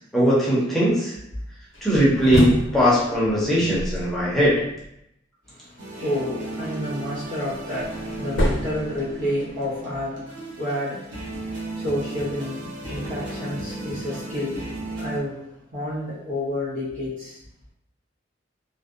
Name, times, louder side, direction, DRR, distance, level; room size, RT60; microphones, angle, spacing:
voice 1, 0.1-1.1 1.8-4.5, equal, ahead, -8 dB, 0.5 m, -19 dB
sound 1, 1.7-4.9 7.1-9.7, left 1 dB, 75° left, 0.6 m, -28 dB
voice 2, 5.5-17.4, left 1 dB, 85° right, -9 dB, 1.3 m, -30 dB
sound 2, 5.8-15.2, right 2 dB, 65° right, 0.7 m, -35 dB
2.6 x 2.0 x 2.4 m, 0.79 s
head